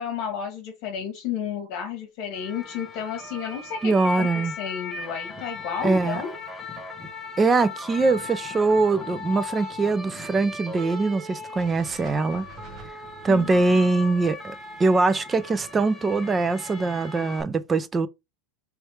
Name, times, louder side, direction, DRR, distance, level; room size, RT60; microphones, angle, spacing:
voice 1, 0.0-6.4 13.3-13.9, left 7 dB, 55° left, 1.3 m, -32 dB
sound 1, 2.3-17.4, left 4 dB, 5° left, 1.0 m, -38 dB
voice 2, 3.8-4.5 5.8-6.2 7.4-12.5 13.2-18.1, right 3 dB, 15° right, 0.5 m, -22 dB
sound 2, 11.6-15.7, right 3 dB, 35° right, 1.3 m, -48 dB
3.2 x 3.1 x 4.7 m
supercardioid pair, 145°, 0 cm